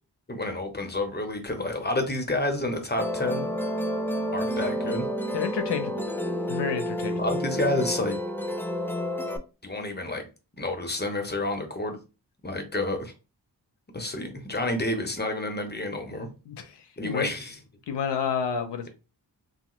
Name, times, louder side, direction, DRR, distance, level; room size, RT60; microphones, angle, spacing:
voice 1, 0.3-3.5 4.3-5.1 7.2-8.2 9.6-10.3 10.6-12.0 12.4-13.1 13.9-16.3 17.0-17.6, left 2 dB, 25° left, 0.8 m, -29 dB
Musical instrument, 3.0-9.4, equal, 5° left, 0.3 m, -30 dB
voice 2, 5.3-6.0 6.5-7.2 16.5-17.3 17.9-18.9, left 6 dB, 80° left, 0.6 m, -30 dB
3.0 x 2.4 x 3.0 m
wide cardioid pair, 65°, 41 cm